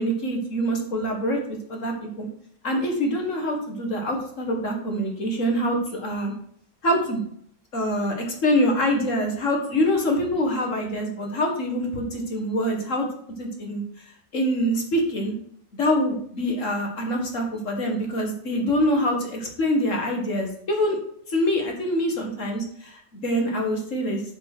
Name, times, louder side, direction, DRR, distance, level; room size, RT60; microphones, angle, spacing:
voice 1, 0.0-2.3 2.6-6.3 6.8-7.2 7.7-13.1 13.4-13.8 14.3-15.3 15.8-21.0 21.3-24.2, equal, 45° left, 2 dB, 2.0 m, -25 dB
6.8 x 5.7 x 6.1 m, 0.64 s
omnidirectional pair, 1.8 m